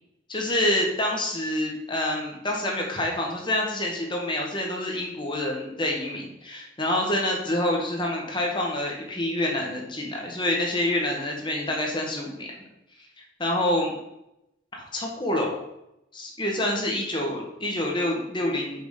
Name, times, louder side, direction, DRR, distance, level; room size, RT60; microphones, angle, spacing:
voice 1, 0.3-12.5 13.4-13.9 14.7-15.6 16.1-18.9, left 1 dB, 25° left, 0 dB, 1.5 m, -27 dB
6.1 x 5.0 x 5.3 m, 0.86 s
head